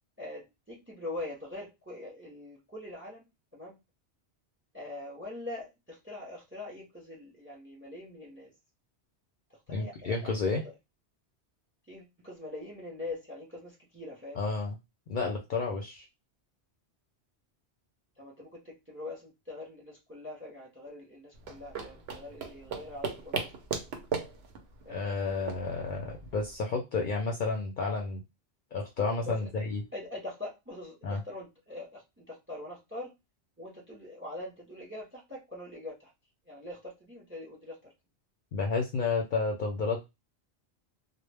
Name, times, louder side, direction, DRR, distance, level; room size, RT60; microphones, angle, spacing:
voice 1, 0.2-3.2 3.5-3.8 4.7-8.5 9.7-10.3 11.9-14.4 18.2-23.5 24.8-25.0 29.2-29.5 29.9-33.1 33.6-36.1 36.5-37.9, left 2 dB, 15° right, -1 dB, 0.5 m, -43 dB
voice 2, 9.7-10.6 14.3-14.8 15.1-16.1 24.9-28.2 28.7-29.8 31.0-31.2 38.5-40.0, left 4 dB, 60° left, 1 dB, 0.6 m, -31 dB
sound 1, 21.3-26.6, right 5 dB, 70° right, 0.8 m, -38 dB
2.1 x 2.1 x 3.2 m, 0.23 s
omnidirectional pair, 1.2 m